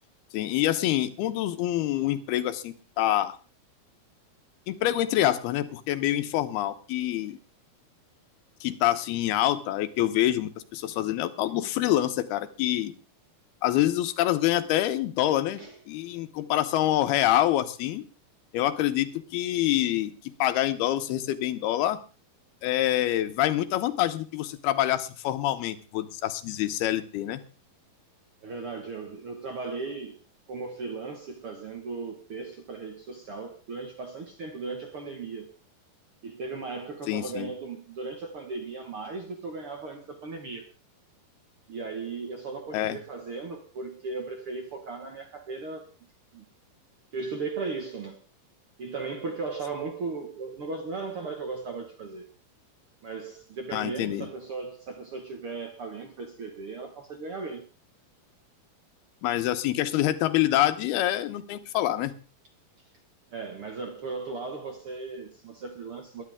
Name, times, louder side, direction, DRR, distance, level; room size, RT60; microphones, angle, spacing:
voice 1, 0.3-3.4 4.7-7.4 8.6-12.9 13.6-15.6 15.9-18.0 18.5-22.0 22.6-27.4 37.1-37.5 42.7-43.0 53.7-54.3 59.2-62.1, left 13 dB, 85° left, 2.9 m, -26 dB
voice 2, 28.4-30.2 30.5-35.5 36.2-40.7 41.7-45.9 46.3-46.5 47.1-48.2 48.8-52.3 53.0-57.7 63.3-66.2, right 4 dB, 55° right, 1.6 m, -37 dB
21.0 x 11.0 x 3.6 m
omnidirectional pair, 4.4 m